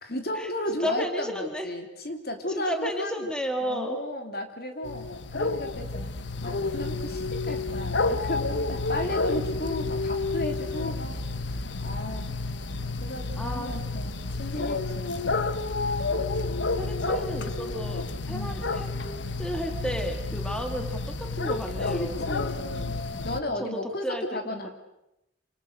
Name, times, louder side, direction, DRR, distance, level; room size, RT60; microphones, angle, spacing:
voice 1, 0.0-3.3 3.6-6.1 6.4-11.2 11.8-12.4 13.0-15.7 18.3-18.7 21.9-23.0 23.2-24.7, left 1 dB, 55° left, 5 dB, 3.2 m, -34 dB
voice 2, 0.8-1.7 2.5-4.0 13.4-13.7 16.8-22.3 23.6-24.6, right 1 dB, 5° left, 4 dB, 2.3 m, -33 dB
sound 1, 4.8-23.4, left 3 dB, 75° left, 1.2 m, -30 dB
28.0 x 26.5 x 6.7 m, 0.88 s
head